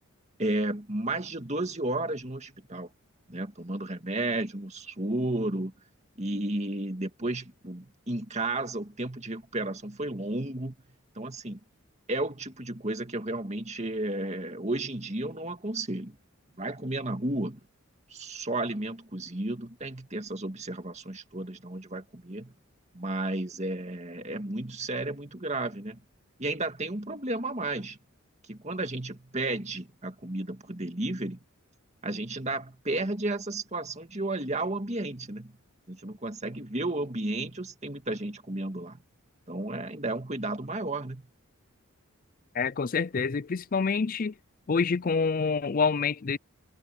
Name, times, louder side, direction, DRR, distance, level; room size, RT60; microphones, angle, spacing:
voice 1, 0.4-2.9 3.3-5.7 6.2-10.8 11.2-11.6 12.1-16.2 16.6-17.6 18.1-22.5 22.9-26.0 26.4-28.0 28.5-31.4 32.0-35.6 35.9-39.0 39.5-41.3, right 2 dB, 30° right, 2.1 m, -33 dB
voice 2, 42.5-44.3 44.7-46.4, left 5 dB, 40° left, 0.4 m, -27 dB
head